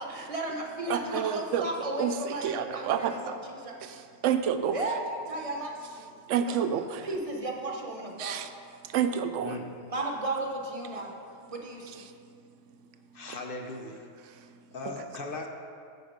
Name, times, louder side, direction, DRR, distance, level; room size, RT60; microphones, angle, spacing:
voice 1, 0.0-4.0 4.7-6.1 6.5-6.6 7.0-8.4 9.9-11.1 11.5-12.0, right 2 dB, 30° right, 0 dB, 1.0 m, -35 dB
voice 2, 0.9-3.4 3.8-4.8 6.3-7.1 8.2-8.5 8.8-9.6 11.9-12.0 13.3-13.4 14.2-14.5 14.8-14.9, right 8 dB, 85° right, 9 dB, 0.9 m, -30 dB
voice 3, 13.1-14.0 14.7-15.5, left 2 dB, 55° left, 3 dB, 0.8 m, -38 dB
11.0 x 4.7 x 5.1 m, 2.3 s
omnidirectional pair, 1.2 m